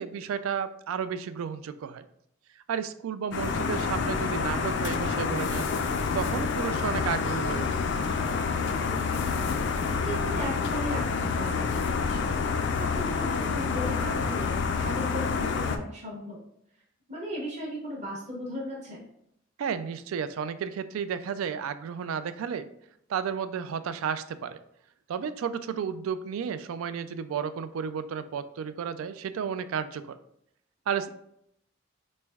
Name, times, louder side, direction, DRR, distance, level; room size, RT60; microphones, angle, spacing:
voice 1, 0.0-2.1 2.7-5.7 6.1-7.7 19.6-22.7 23.1-24.6 25.1-30.2 30.9-31.1, right 7 dB, 90° right, 13 dB, 0.3 m, -32 dB
sound 1, 3.3-15.8, left 5 dB, 60° left, 0.3 m, -28 dB
voice 2, 8.8-12.4 12.8-16.4 17.1-19.0, equal, 35° right, -4 dB, 0.7 m, -37 dB
4.1 x 3.2 x 2.3 m, 0.73 s
head